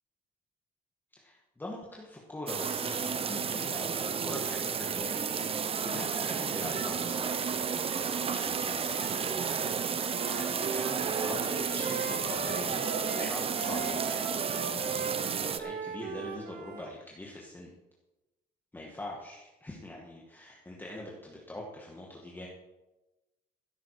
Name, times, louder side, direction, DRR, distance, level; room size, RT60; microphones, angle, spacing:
voice 1, 1.2-5.3 5.8-9.7 10.3-17.7 18.7-22.5, left 1 dB, 10° left, -2 dB, 2.0 m, -43 dB
sound 1, 2.5-15.6, right 6 dB, 35° right, 0.8 m, -32 dB
Wind instrument woodwind instrument, 10.1-16.9, right 5 dB, 65° right, 1.9 m, -38 dB
15.5 x 8.9 x 5.0 m, 1.1 s
cardioid pair, 110°, 17 cm